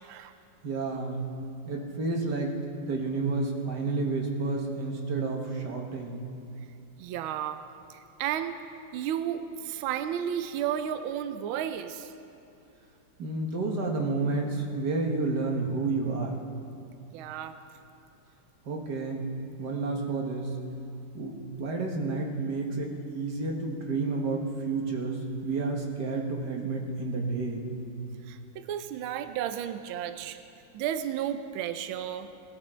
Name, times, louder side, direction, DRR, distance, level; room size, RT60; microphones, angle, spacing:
voice 1, 0.0-0.3 7.0-7.6 7.9-8.5 8.9-12.1 17.1-17.6 28.3-30.4 30.7-32.4, right 10 dB, 75° right, 9 dB, 1.4 m, -33 dB
voice 2, 0.6-1.2 1.7-2.6 2.9-6.2 13.2-16.3 18.7-19.3 19.6-20.6 21.1-27.6, right 3 dB, 55° right, 1 dB, 1.9 m, -30 dB
19.5 x 12.5 x 4.4 m, 2.7 s
omnidirectional pair, 2.3 m